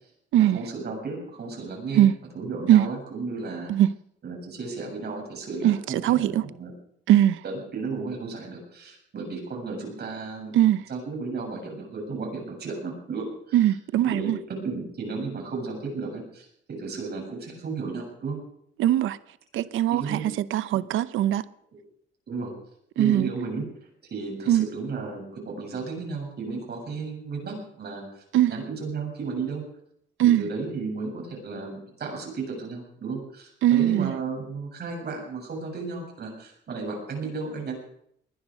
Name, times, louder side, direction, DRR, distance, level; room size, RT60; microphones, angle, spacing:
voice 1, 0.4-2.0 2.3-3.7 4.2-6.7 7.4-10.6 10.9-13.6 14.0-18.4 19.9-20.2 20.7-20.8 21.7-21.8 22.3-22.5 23.0-23.7 24.1-28.2 28.5-29.6 30.2-37.8, right 4 dB, 55° right, 7.4 m, -34 dB
voice 2, 5.6-6.4 7.1-7.4 10.5-10.8 13.5-14.4 18.8-19.2 19.5-21.4 23.0-23.3 24.5-24.7 28.3-28.5 30.2-30.4 33.6-34.1, right 12 dB, 80° right, 0.7 m, -21 dB
20.5 x 10.5 x 6.5 m
cardioid pair, 90°, 20 cm